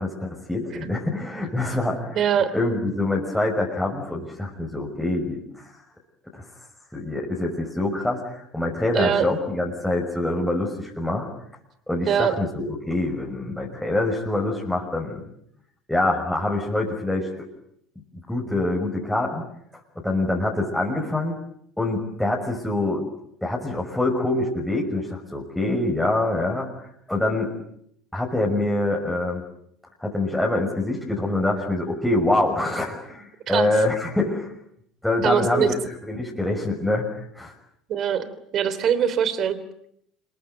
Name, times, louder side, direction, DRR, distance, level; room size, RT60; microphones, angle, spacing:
voice 1, 0.0-2.2 2.5-5.8 6.3-6.5 6.9-11.3 11.9-15.2 15.9-17.5 18.3-19.4 20.0-21.4 21.8-23.1 23.4-27.5 28.1-29.4 30.0-34.5 35.0-37.0 37.3-37.5, left 2 dB, 5° left, -2 dB, 6.1 m, -25 dB
voice 2, 2.1-2.5 8.9-9.3 12.1-12.4 33.5-33.7 35.2-35.7 37.9-39.6, right 8 dB, 45° right, 14 dB, 3.3 m, -22 dB
27.5 x 22.5 x 9.2 m, 0.72 s
hypercardioid pair, 65°, 0 cm